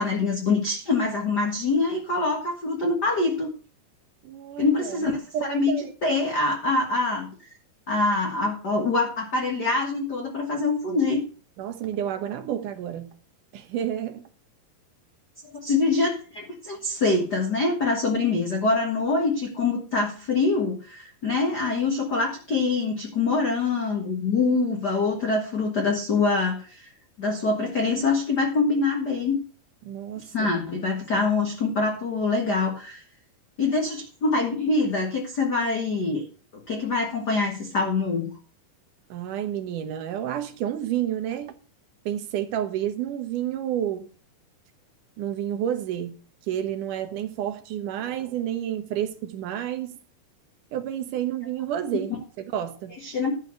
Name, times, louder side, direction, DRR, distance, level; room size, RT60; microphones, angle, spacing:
voice 1, 0.0-3.5 4.6-5.8 6.0-7.5 7.9-11.2 15.6-26.9 27.2-29.4 30.3-33.0 33.6-36.2 36.7-38.3 53.0-53.3, left 3 dB, 50° left, 1.2 m, -24 dB
voice 2, 4.2-5.9 11.6-13.1 13.5-14.2 29.9-30.6 39.1-41.6 42.1-44.1 45.2-46.2 46.5-50.0 50.7-53.0, right 10 dB, 70° right, 2.2 m, -30 dB
12.5 x 4.7 x 7.8 m
omnidirectional pair, 4.5 m